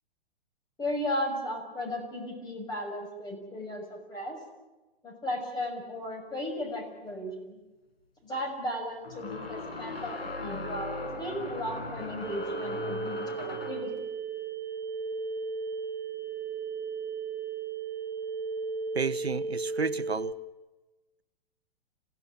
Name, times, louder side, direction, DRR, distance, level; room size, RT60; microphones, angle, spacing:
voice 1, 0.8-4.4 5.0-7.6 8.2-13.9, left 1 dB, 15° left, 2 dB, 6.2 m, -35 dB
sound 1, 7.1-7.2 9.0-13.9, left 2 dB, 75° left, 6.5 m, -38 dB
sound 2, 12.2-20.3, right 4 dB, 5° right, 2.3 m, -35 dB
voice 2, 18.9-20.3, right 5 dB, 85° right, 17 dB, 0.8 m, -31 dB
27.5 x 16.0 x 8.7 m, 1.1 s
figure-of-eight pair, 110°, 31 cm